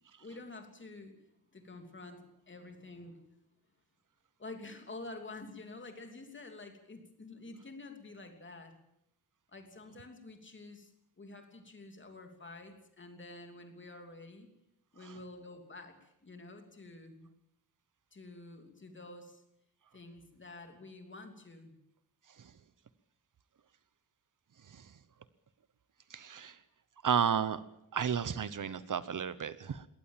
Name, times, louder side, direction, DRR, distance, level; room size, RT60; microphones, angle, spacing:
voice 1, 0.2-1.2 1.5-3.2 4.4-8.8 9.5-10.9 11.2-14.5 14.9-17.3 18.1-19.4 19.9-21.8, left 2 dB, 30° left, 5 dB, 3.0 m, -49 dB
voice 2, 26.1-26.6 27.0-27.6 27.9-29.9, right 7 dB, 55° right, 15 dB, 1.0 m, -32 dB
21.5 x 18.0 x 7.4 m, 0.80 s
wide cardioid pair, 160°, 37 cm